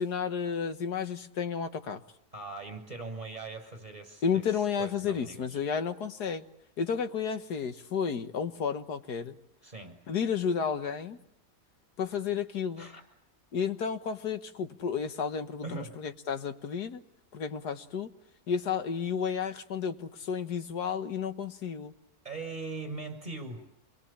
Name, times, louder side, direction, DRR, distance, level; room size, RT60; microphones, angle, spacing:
voice 1, 0.0-2.0 4.2-6.4 6.8-9.4 10.1-11.2 12.0-12.9 13.5-17.0 17.3-18.1 18.5-21.9, left 6 dB, 80° left, 9 dB, 1.9 m, -32 dB
voice 2, 2.3-5.6 9.6-10.0 12.8-13.0 15.6-15.9 22.2-23.6, right 3 dB, 25° right, 5 dB, 6.8 m, -41 dB
27.5 x 22.0 x 8.7 m, 0.78 s
omnidirectional pair, 1.7 m